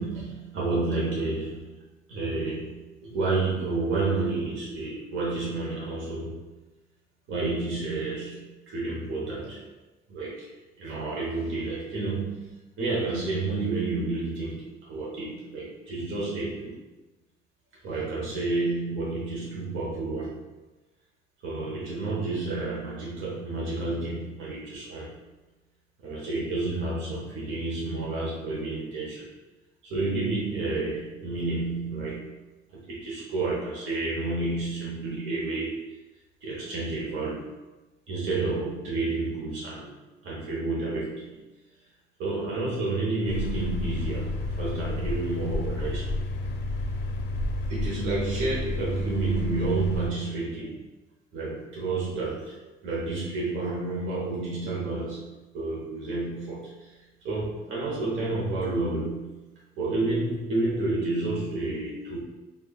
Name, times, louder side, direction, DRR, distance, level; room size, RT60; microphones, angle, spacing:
voice 1, 0.0-1.7 2.1-6.4 7.3-9.6 10.1-10.5 10.8-16.7 17.8-20.4 21.4-25.1 26.0-29.2 29.8-32.3 32.7-35.8 36.4-37.4 38.1-39.9 40.2-41.4 42.2-46.0 47.7-50.8 51.3-52.6 52.8-55.3 55.5-56.7 57.2-59.4 59.8-62.2, right 3 dB, 80° right, -5 dB, 0.9 m, -30 dB
sound 1, 43.3-50.1, left 2 dB, 60° left, 0.5 m, -31 dB
5.2 x 2.3 x 2.3 m, 1.1 s
cardioid pair, 90°, 20 cm